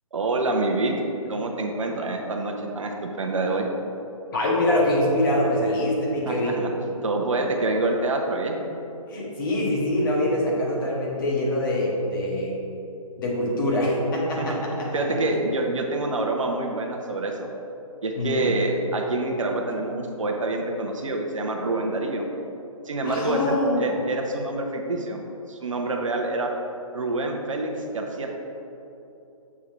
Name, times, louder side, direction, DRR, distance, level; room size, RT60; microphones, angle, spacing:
voice 1, 0.1-0.9 1.3-3.7 6.3-6.7 7.0-8.6 14.4-14.6 14.9-17.5 18.0-22.3 22.8-26.5 26.9-28.3, right 2 dB, 60° right, 2 dB, 0.8 m, -26 dB
voice 2, 4.3-6.6 9.1-12.6 13.2-15.0 18.2-18.5 23.0-23.8, left 1 dB, 35° left, -4 dB, 1.4 m, -24 dB
7.3 x 3.6 x 4.5 m, 2.9 s
figure-of-eight pair, 140°, 19 cm